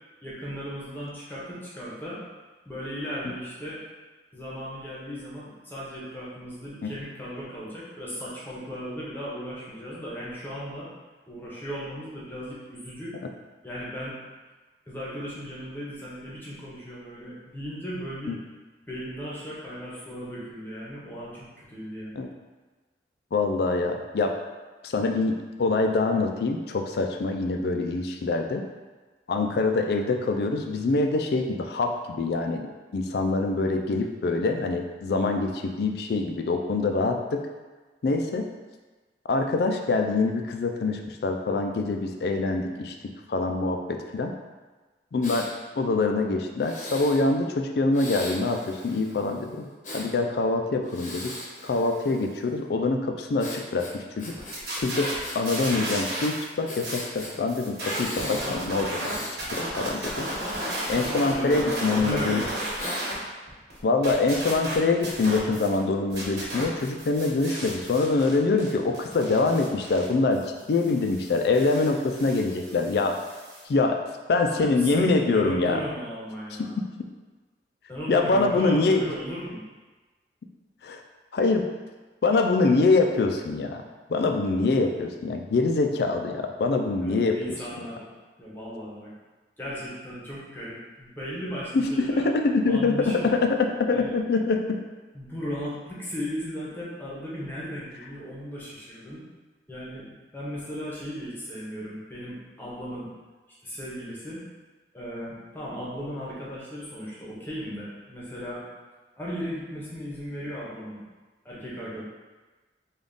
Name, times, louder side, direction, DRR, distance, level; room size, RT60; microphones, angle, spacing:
voice 1, 0.2-2.2 2.6-3.8 4.3-10.9 11.3-13.2 13.6-14.2 14.9-18.3 18.9-22.1 61.3-62.5 74.5-76.8 77.9-79.6 87.0-88.1 88.4-89.1 89.6-92.2 92.7-93.5 93.9-94.1 95.1-99.2 99.7-103.1 103.6-104.4 104.9-108.6 109.2-111.0 111.4-112.0, equal, 10° left, -7 dB, 0.8 m, -36 dB
voice 2, 23.3-24.3 24.8-28.6 29.3-32.6 32.9-37.4 38.0-38.4 39.3-42.9 43.3-44.3 45.1-45.5 45.8-49.7 49.9-51.3 51.6-54.3 54.8-55.1 55.3-59.2 59.5-60.3 60.9-62.4 63.8-70.4 70.7-73.2 73.7-74.0 74.3-75.8 76.6-76.7 78.1-79.0 80.8-81.0 81.3-81.7 82.2-83.8 84.1-87.4 91.7-94.8, left 3 dB, 65° left, 4 dB, 0.3 m, -24 dB
Breathing, 45.2-45.5 46.6-47.2 47.9-50.1 50.8-52.5 53.4-55.7 56.0-56.1 56.7-57.3 57.8-58.5 58.9-59.4 59.8-62.0 62.8-63.0, left 1 dB, 45° left, 0.8 m, -40 dB
sound 1, 54.4-56.4 56.7-63.1 63.5-65.8 66.1-73.6, right 1 dB, 70° right, 1.3 m, -34 dB
3.4 x 2.4 x 3.8 m, 1.3 s
head